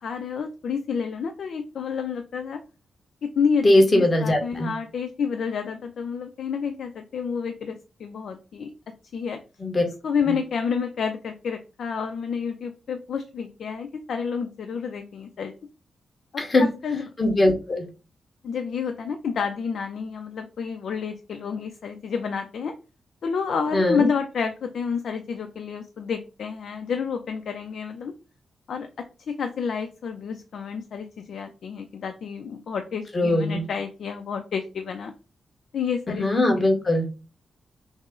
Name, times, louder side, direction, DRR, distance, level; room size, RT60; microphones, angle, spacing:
voice 1, 0.0-2.6 3.4-3.7 4.0-8.7 9.1-9.4 10.0-15.5 16.3-17.0 18.4-22.7 23.2-28.1 28.7-35.1 35.7-36.3, left 6 dB, 70° left, 6 dB, 0.5 m, -29 dB
voice 2, 3.6-4.7 9.6-9.8 10.3-10.4 16.4-16.6 17.2-17.8 23.7-24.1 33.1-33.6 36.1-37.0, left 1 dB, 25° left, 2 dB, 1.2 m, -20 dB
6.1 x 2.1 x 3.7 m, 0.32 s
wide cardioid pair, 160°, 0 cm